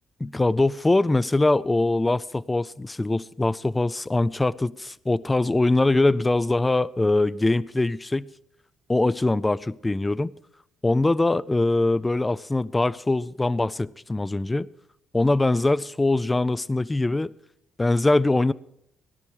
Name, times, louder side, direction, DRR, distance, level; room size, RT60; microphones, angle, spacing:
voice 1, 0.2-8.3 8.9-10.3 10.8-14.7 15.1-17.3 17.8-18.5, left 2 dB, 15° left, 0.5 m, -22 dB
17.5 x 11.5 x 4.6 m
cardioid pair, 90°, 0 cm